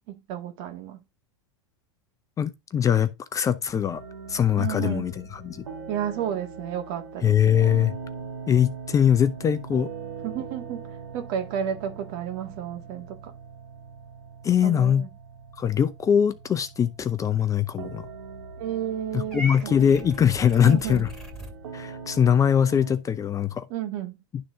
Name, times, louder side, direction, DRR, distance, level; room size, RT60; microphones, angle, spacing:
voice 1, 0.1-1.0 4.6-5.1 5.9-7.9 10.2-13.3 14.6-15.1 18.6-19.9 20.6-21.0 23.7-24.2, right 9 dB, 50° right, 2.0 m, -32 dB
voice 2, 2.4-4.0 4.3-5.6 7.2-7.9 8.5-9.9 14.4-15.1 15.6-18.1 19.1-21.1 21.7-23.7 24.3-24.5, left 8 dB, 20° left, 0.6 m, -22 dB
sound 1, 3.9-23.0, right 5 dB, 75° right, 2.0 m, -41 dB
Purr / Meow, 19.3-21.5, equal, 5° left, 2.5 m, -38 dB
11.0 x 3.8 x 3.8 m
hypercardioid pair, 105°, 15 cm